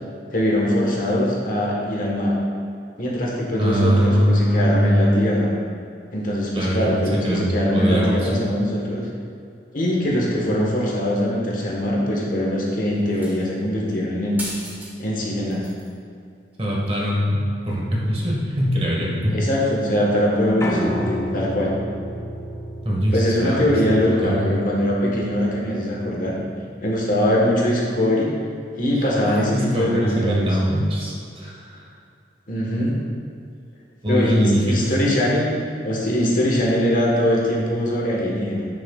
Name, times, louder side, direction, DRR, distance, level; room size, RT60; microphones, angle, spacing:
voice 1, 0.3-2.4 3.0-5.5 6.1-9.0 9.7-14.4 15.0-15.7 19.3-21.7 23.1-26.4 26.8-28.3 28.7-30.6 32.5-33.0 34.1-35.5 35.8-38.7, left 1 dB, 50° left, -3 dB, 1.3 m, -22 dB
voice 2, 3.6-5.1 6.5-8.5 16.6-19.4 22.8-23.6 24.2-24.5 28.9-31.9 34.0-34.9, equal, 35° right, -4 dB, 1.5 m, -22 dB
sound 1, 13.1-13.6 14.4-14.9 15.2-15.9 16.9-17.0, right 1 dB, 10° right, 1.5 m, -35 dB
Piano, 20.6-26.8, equal, 15° left, 0.6 m, -31 dB
10.0 x 6.4 x 2.4 m, 2.5 s
head